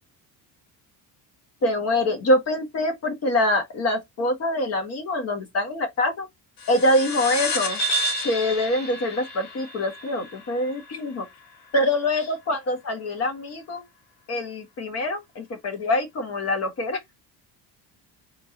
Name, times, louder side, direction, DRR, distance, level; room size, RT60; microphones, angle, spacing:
voice 1, 1.6-6.3 6.7-7.8 8.2-11.2 11.7-13.8 14.3-17.0, left 1 dB, 35° left, 1.5 m, -24 dB
sound 1, 6.6-11.5, left 1 dB, 70° left, 1.5 m, -30 dB
3.7 x 3.0 x 3.8 m
cardioid pair, 175°, 41 cm